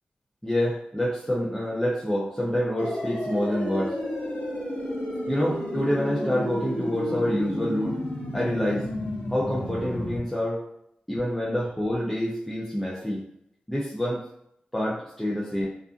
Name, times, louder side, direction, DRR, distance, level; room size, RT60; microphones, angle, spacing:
voice 1, 0.4-3.9 5.3-8.0 8.3-8.9 9.3-10.6 11.1-13.2 13.7-14.2 14.7-15.7, equal, 5° left, -6 dB, 0.5 m, -27 dB
sound 1, 2.8-10.2, left 1 dB, 80° left, 0.9 m, -32 dB
2.5 x 2.4 x 2.4 m, 0.75 s
cardioid pair, 60°, 3 cm